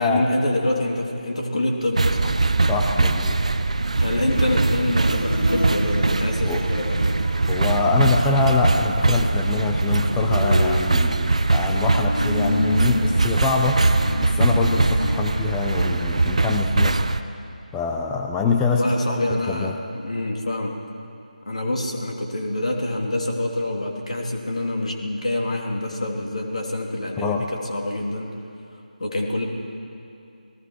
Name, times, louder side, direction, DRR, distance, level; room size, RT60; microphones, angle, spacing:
voice 1, 0.0-2.4 4.0-7.1 18.7-20.7 21.4-28.3 29.0-29.5, left 1 dB, 50° left, 1 dB, 3.0 m, -26 dB
sound 1, 2.0-17.2, right 3 dB, 50° right, 0.8 m, -21 dB
voice 2, 2.7-3.4 6.4-6.6 7.5-13.8 14.2-17.0 17.7-18.8 19.3-19.7 27.2-27.4, left 4 dB, 5° left, 1 dB, 0.6 m, -24 dB
Follow Me..., 5.0-16.6, left 1 dB, 80° left, 0.7 m, -31 dB
29.5 x 19.0 x 4.7 m, 2.6 s
figure-of-eight pair, 160°, 5 cm